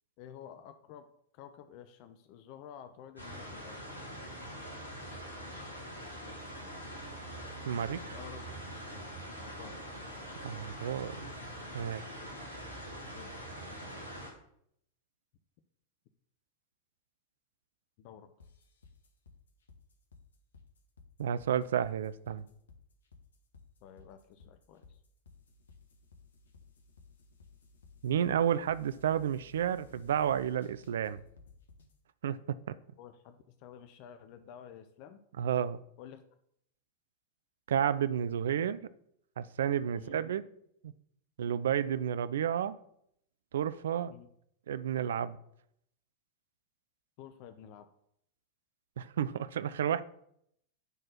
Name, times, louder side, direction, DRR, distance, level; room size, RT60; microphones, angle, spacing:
voice 1, 0.2-1.1 1.3-3.9 8.1-8.4 9.4-9.8 13.1-13.4 13.7-13.8 18.0-18.3 23.8-25.0 33.0-35.2 36.0-36.2 39.9-40.2 44.1-44.3 47.2-47.9, left 9 dB, 45° left, 9 dB, 0.6 m, -51 dB
sound 1, 3.2-14.3, equal, 90° right, 1.9 m, -44 dB
voice 2, 7.7-8.2 10.4-11.3 11.7-12.1 21.2-22.5 28.0-31.2 32.2-32.6 35.4-35.8 37.7-38.9 39.4-40.4 40.8-40.9 41.4-42.8 43.5-44.1 44.7-45.4 49.0-50.0, right 9 dB, 60° right, 16 dB, 0.4 m, -31 dB
sound 2, 18.4-32.0, left 4 dB, 70° left, 1.3 m, -58 dB
10.0 x 4.3 x 6.4 m, 0.73 s
figure-of-eight pair, 90°, 0 cm